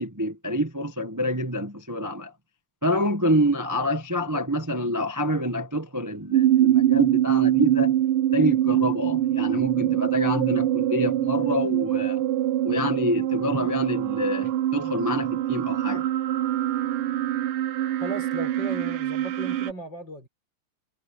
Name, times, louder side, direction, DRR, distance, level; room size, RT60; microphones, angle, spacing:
voice 1, 0.0-2.3 2.8-7.9 8.3-12.2 12.6-16.0, equal, 25° right, 0.4 m, -27 dB
sound 1, 6.3-19.7, right 12 dB, 85° right, 1.1 m, -24 dB
voice 2, 18.0-20.3, equal, 35° left, 7.2 m, -36 dB
omnidirectional pair, 3.3 m